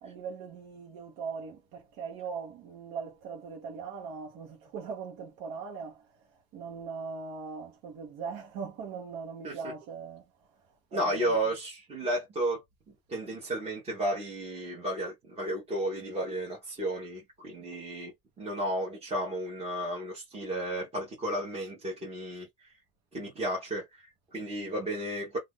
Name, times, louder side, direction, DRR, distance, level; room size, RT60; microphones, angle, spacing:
voice 1, 0.0-10.2 10.9-11.4, right 5 dB, 65° right, 1.0 m, -40 dB
voice 2, 10.9-12.6 13.1-18.1 18.4-22.8 23.1-25.4, right 1 dB, 15° right, 0.8 m, -33 dB
2.5 x 2.4 x 3.5 m
cardioid pair, 180°, 37 cm